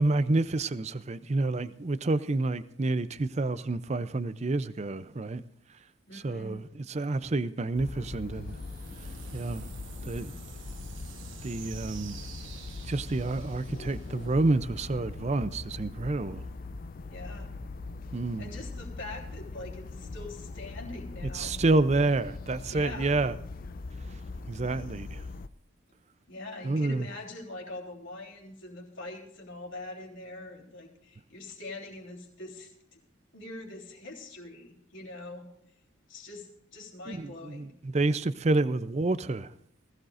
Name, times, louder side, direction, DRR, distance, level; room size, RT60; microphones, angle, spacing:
voice 1, 0.0-5.4 6.1-8.6 9.3-9.7 10.1-10.3 11.4-12.2 12.9-16.4 18.1-18.5 21.3-23.3 24.5-25.2 26.6-27.0 37.1-39.5, right 2 dB, 30° right, 0.5 m, -29 dB
voice 2, 6.1-6.6 17.1-17.6 18.4-21.5 22.7-23.2 26.3-33.0 33.3-35.5 36.1-37.7, left 2 dB, 65° left, 3.6 m, -43 dB
sound 1, 7.7-25.5, left 3 dB, 40° left, 0.4 m, -41 dB
sound 2, 8.2-15.1, right 6 dB, 65° right, 1.3 m, -49 dB
20.0 x 16.0 x 2.6 m
head